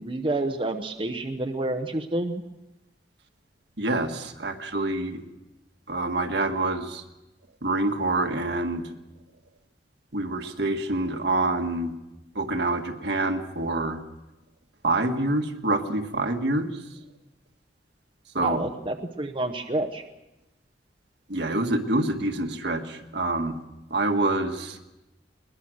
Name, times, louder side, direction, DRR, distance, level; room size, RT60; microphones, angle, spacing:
voice 1, 0.0-2.4 18.3-20.0, right 2 dB, 30° right, 5 dB, 0.9 m, -29 dB
voice 2, 3.8-5.2 5.9-7.0 7.6-8.9 10.1-11.9 12.4-14.0 14.8-16.8 18.4-18.6 21.3-23.6 23.9-24.8, right 2 dB, 65° right, 4 dB, 1.8 m, -26 dB
21.5 x 20.5 x 6.4 m, 0.99 s
head